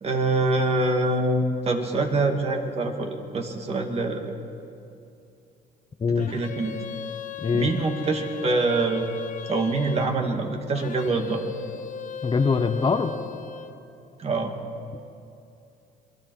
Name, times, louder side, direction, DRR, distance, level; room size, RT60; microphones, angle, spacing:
voice 1, 0.0-4.3 6.2-6.8 7.5-9.1 9.5-11.4 14.2-14.5, right 2 dB, 35° right, 3 dB, 2.2 m, -25 dB
sound 1, 6.2-10.2 10.7-13.8, left 7 dB, 50° left, 1.0 m, -37 dB
voice 2, 12.2-13.1, left 5 dB, 30° left, 8 dB, 0.9 m, -23 dB
27.0 x 20.0 x 4.7 m, 2.6 s
cardioid pair, 110°, 17 cm